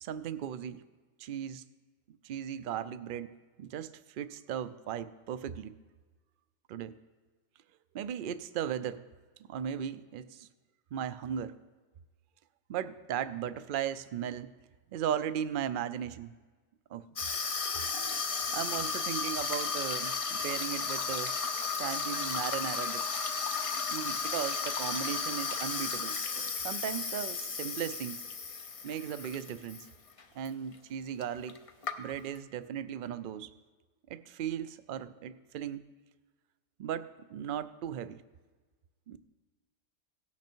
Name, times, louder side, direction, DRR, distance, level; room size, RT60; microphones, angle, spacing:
voice 1, 0.0-0.8 1.2-1.6 2.2-3.3 3.6-5.7 6.7-7.0 7.9-9.0 9.5-10.5 10.9-11.6 12.7-14.5 14.9-16.3 16.9-17.0 18.3-21.3 21.8-23.0 23.9-28.2 28.8-29.9 30.4-31.6 32.0-33.5 34.1-35.8 36.8-38.2 39.1-39.2, right 9 dB, 65° right, 14 dB, 0.5 m, -37 dB
Water tap faucet / Sink (filling or washing), 17.2-29.9 30.2-30.5 31.2-31.3 31.5-32.4, left 5 dB, 40° left, 0.5 m, -34 dB
17.5 x 5.8 x 4.5 m, 1.3 s
omnidirectional pair, 1.3 m